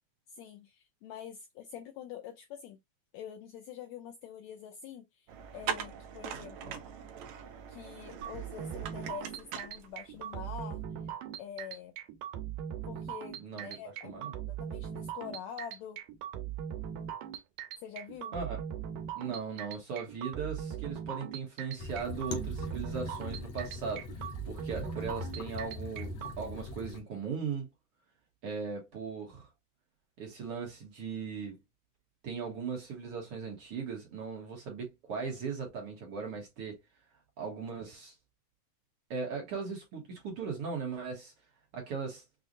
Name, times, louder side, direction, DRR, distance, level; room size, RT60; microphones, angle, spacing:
voice 1, 0.3-2.8 3.1-6.8 7.7-11.1 11.4-11.9 12.9-16.0 17.8-18.3, left 8 dB, 80° left, 1.6 m, -46 dB
sound 1, 5.3-10.3, right 8 dB, 70° right, 1.8 m, -41 dB
sound 2, 8.2-26.3, right 9 dB, 90° right, 2.4 m, -40 dB
voice 2, 13.4-13.8 14.0-14.3 18.3-18.6 19.2-27.7 28.4-29.5 30.2-31.6 32.2-36.8 37.4-38.1 39.1-41.3 41.7-42.2, right 5 dB, 55° right, 1.9 m, -38 dB
sound 3, 21.8-27.0, left 2 dB, 60° left, 1.9 m, -41 dB
6.1 x 2.4 x 2.6 m
omnidirectional pair, 3.7 m